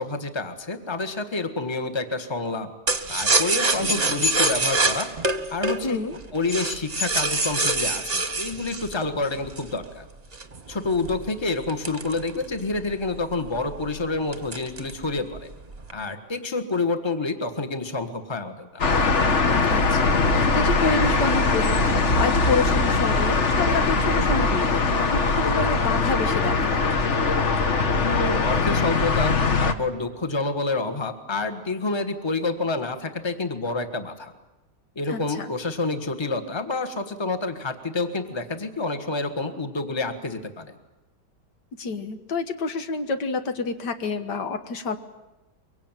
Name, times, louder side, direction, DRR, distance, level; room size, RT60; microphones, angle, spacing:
voice 1, 0.0-2.7 3.1-5.1 5.5-6.0 6.3-10.0 10.7-15.5 15.9-18.9 28.0-34.3 34.9-40.7, left 3 dB, 15° left, 8 dB, 1.5 m, -28 dB
sound 1, 2.9-9.8 10.3-12.8 13.1-13.2 13.5-13.9 14.3-15.0 15.3-15.9, right 2 dB, 25° right, 1.3 m, -25 dB
voice 2, 5.8-6.2 19.7-26.9 35.1-35.5 41.8-45.0, left 4 dB, 75° left, 8 dB, 2.0 m, -28 dB
sound 2, 18.8-29.7, left 3 dB, 45° left, 1.5 m, -21 dB
23.5 x 23.5 x 9.1 m, 1.0 s
omnidirectional pair, 1.8 m